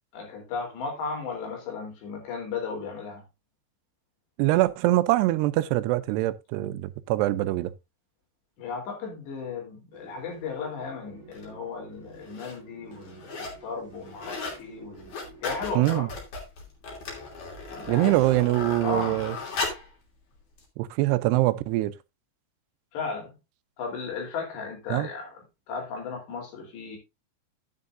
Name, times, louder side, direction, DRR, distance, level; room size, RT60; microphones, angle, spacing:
voice 1, 0.1-3.2 8.6-15.1 15.4-16.1 17.7-18.4 18.8-19.2 22.9-23.4 23.8-27.0, left 4 dB, 85° left, 5.7 m, -35 dB
voice 2, 4.4-7.7 15.8-16.1 17.9-19.4 20.8-21.9 24.9-25.1, right 17 dB, 85° right, 2.7 m, -23 dB
sound 1, 9.9-16.2, right 4 dB, 45° right, 0.9 m, -51 dB
sound 2, 11.3-11.4 12.1-12.6 12.9-13.6 13.9-14.6 14.9-19.9 20.6-20.7, left 3 dB, 50° left, 4.1 m, -36 dB
11.0 x 9.8 x 2.6 m
omnidirectional pair, 4.8 m